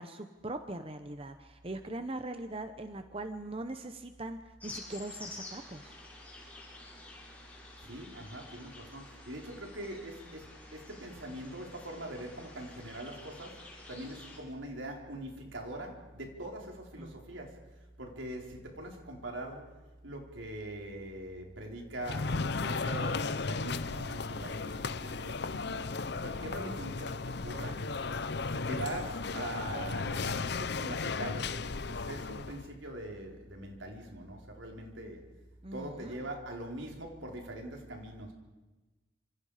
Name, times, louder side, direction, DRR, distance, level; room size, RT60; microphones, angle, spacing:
voice 1, 0.0-6.0 17.0-17.2 26.4-26.8 35.6-36.3, right 2 dB, 30° right, 8 dB, 1.0 m, -41 dB
sound 1, 4.6-14.4, left 2 dB, 10° left, 6.4 m, -50 dB
voice 2, 7.9-10.4 10.7-13.5 13.9-17.5 18.0-19.7 20.0-25.9 26.2-27.8 28.5-31.5 31.9-35.2 35.7-38.3, right 1 dB, 80° right, 1 dB, 4.5 m, -42 dB
sound 2, 22.0-32.7, left 4 dB, 60° left, 0.8 m, -35 dB
28.0 x 26.5 x 5.1 m, 1.2 s
head